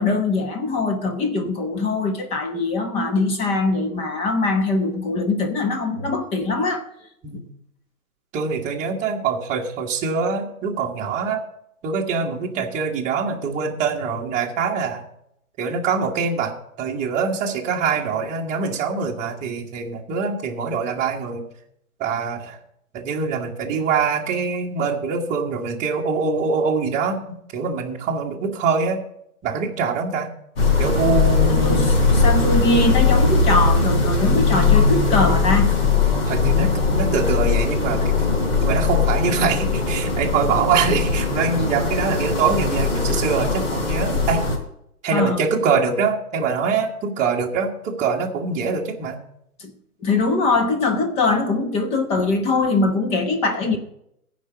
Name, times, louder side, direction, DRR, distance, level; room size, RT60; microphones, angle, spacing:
voice 1, 0.0-6.8 7.3-7.4 31.5-35.7 45.1-45.4 49.6-49.7 50.0-53.8, left 3 dB, 15° left, 5 dB, 1.0 m, -22 dB
voice 2, 8.3-11.4 11.8-15.0 15.6-21.4 22.0-22.6 22.9-27.2 27.5-29.0 29.4-30.3 30.8-32.0 36.3-38.3 38.6-44.4 45.0-49.2, right 5 dB, 15° right, -1 dB, 1.4 m, -24 dB
sound 1, 30.6-44.6, left 4 dB, 40° left, 3.6 m, -20 dB
15.0 x 5.1 x 6.9 m, 0.75 s
hypercardioid pair, 140°, 45 cm